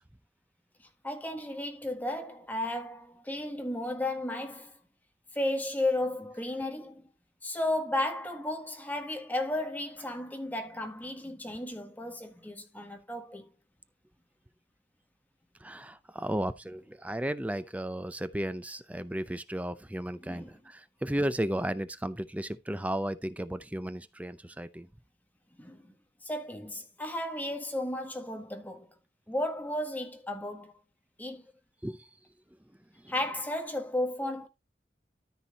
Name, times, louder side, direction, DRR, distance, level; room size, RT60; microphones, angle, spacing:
voice 1, 1.0-4.8 5.3-7.1 7.4-13.5 20.2-20.6 25.6-25.9 26.2-28.9 29.3-30.7 31.2-31.4 33.1-34.5, left 1 dB, 10° left, 1.7 m, -34 dB
voice 2, 15.6-24.9 31.8-32.0, right 1 dB, 10° right, 0.6 m, -34 dB
13.5 x 4.6 x 4.1 m
head